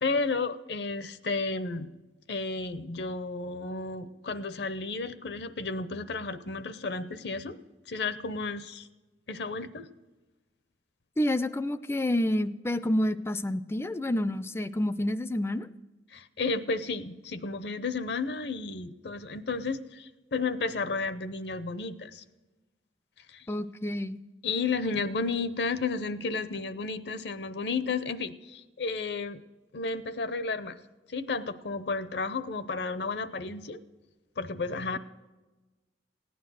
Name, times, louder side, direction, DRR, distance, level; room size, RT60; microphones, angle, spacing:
voice 1, 0.0-1.9 2.3-7.6 7.9-8.9 9.3-9.9 16.1-22.2 23.3-23.4 24.4-29.4 29.7-30.8 31.1-33.8 34.4-35.0, left 4 dB, 65° left, 14 dB, 0.7 m, -32 dB
voice 2, 11.2-15.7 23.5-24.2, left 1 dB, 15° left, 14 dB, 0.4 m, -29 dB
16.0 x 9.4 x 6.3 m, 1.2 s
head